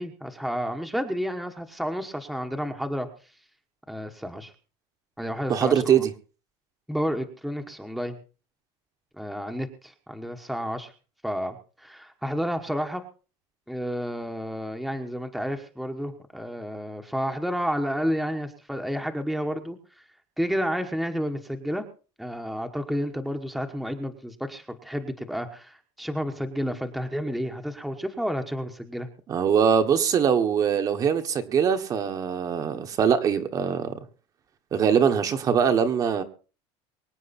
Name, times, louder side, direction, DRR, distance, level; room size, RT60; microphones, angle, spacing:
voice 1, 0.0-3.1 3.9-4.5 5.2-6.0 6.9-8.2 9.2-10.9 11.2-13.0 13.7-19.8 20.4-21.8 22.2-29.1, equal, ahead, 4 dB, 1.2 m, -31 dB
voice 2, 5.5-6.1 29.3-33.9 34.7-36.2, right 7 dB, 30° right, 7 dB, 1.3 m, -22 dB
24.0 x 9.2 x 4.2 m, 0.36 s
cardioid pair, 165°, 13 cm